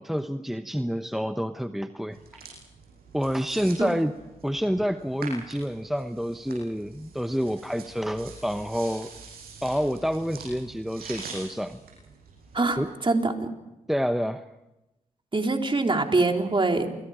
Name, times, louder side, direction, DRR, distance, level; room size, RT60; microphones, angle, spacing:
voice 1, 0.0-2.4 3.1-4.1 4.4-9.1 9.6-11.8 12.8-12.9 13.9-14.4, equal, ahead, 9 dB, 1.0 m, -28 dB
sound 1, 2.1-12.9, right 4 dB, 80° right, 6.8 m, -45 dB
voice 2, 12.5-13.5 15.3-16.9, right 3 dB, 35° right, 3 dB, 3.7 m, -24 dB
29.0 x 24.0 x 5.1 m, 0.96 s
supercardioid pair, 45°, 16 cm